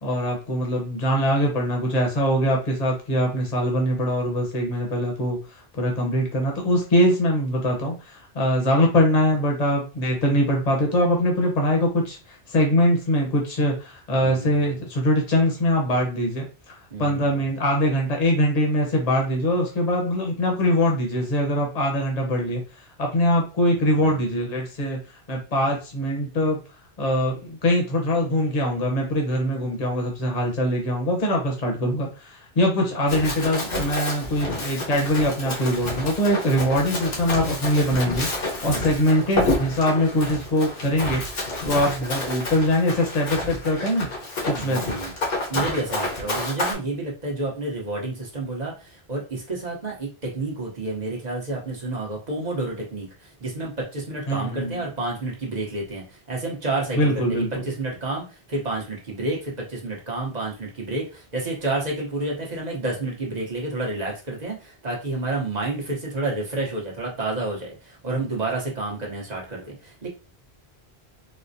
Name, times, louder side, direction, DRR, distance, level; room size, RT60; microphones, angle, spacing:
voice 1, 0.0-5.4 5.8-22.6 23.0-25.0 25.3-26.6 27.0-41.2 41.6-44.1 44.5-45.0 54.3-54.8 56.9-57.5, equal, 40° left, 0 dB, 1.0 m, -22 dB
voice 2, 14.1-14.6 16.9-17.4 23.8-24.2 36.8-37.0 44.5-45.1 45.5-57.2 57.6-70.1, right 2 dB, 45° right, -2 dB, 1.0 m, -30 dB
Run, 33.1-46.7, left 2 dB, 70° left, 1.3 m, -29 dB
4.1 x 2.1 x 2.6 m, 0.33 s
omnidirectional pair, 1.1 m